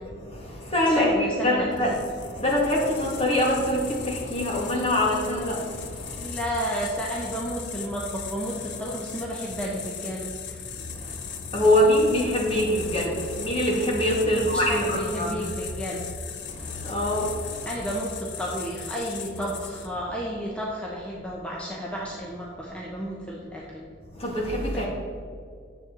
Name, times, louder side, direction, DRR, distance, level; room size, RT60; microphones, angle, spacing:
voice 1, 0.2-6.3 10.8-15.4 16.4-17.7 24.1-24.9, left 1 dB, 35° left, -2 dB, 2.0 m, -24 dB
voice 2, 1.0-2.0 6.2-10.6 14.2-16.1 17.6-23.9 24.7-24.8, equal, 5° left, -4 dB, 1.0 m, -32 dB
sound 1, 1.7-20.1, left 5 dB, 70° left, 0.8 m, -38 dB
10.0 x 7.3 x 4.0 m, 2.2 s
head